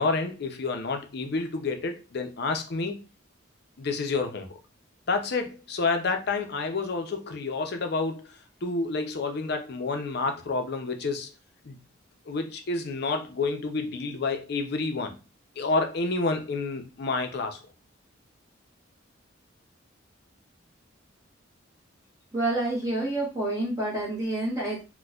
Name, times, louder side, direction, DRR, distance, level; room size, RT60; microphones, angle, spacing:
voice 1, 0.0-3.0 3.8-4.5 5.1-11.3 11.6-11.8 12.2-15.2 15.6-17.6, left 3 dB, 55° left, 5 dB, 0.5 m, -29 dB
voice 2, 22.3-24.8, right 2 dB, 20° right, -5 dB, 1.1 m, -28 dB
4.2 x 2.2 x 2.3 m, 0.30 s
head